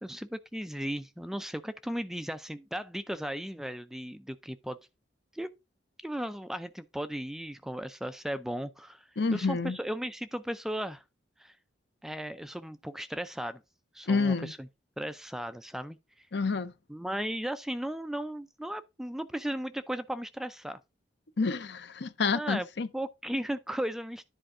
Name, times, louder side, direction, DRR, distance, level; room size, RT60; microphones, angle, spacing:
voice 1, 0.0-4.8 5.3-5.5 6.0-11.0 11.4-11.6 12.0-13.6 13.9-14.6 15.0-16.3 16.9-20.8 22.3-22.7 22.9-24.2, equal, ahead, 0.4 m, -36 dB
voice 2, 9.2-9.8 14.1-14.5 16.3-16.7 21.4-22.9, left 4 dB, 60° left, 0.6 m, -28 dB
10.0 x 4.5 x 3.8 m
head